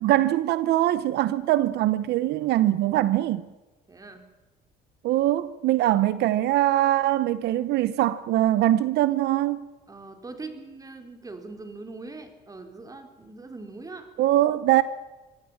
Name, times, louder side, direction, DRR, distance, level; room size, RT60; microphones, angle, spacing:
voice 1, 0.0-3.4 5.0-9.6 14.2-14.8, right 14 dB, 80° right, 1.0 m, -22 dB
voice 2, 3.9-4.3 9.9-14.1, right 3 dB, 20° right, 4.2 m, -41 dB
25.5 x 18.0 x 7.3 m
cardioid pair, 110°, 17 cm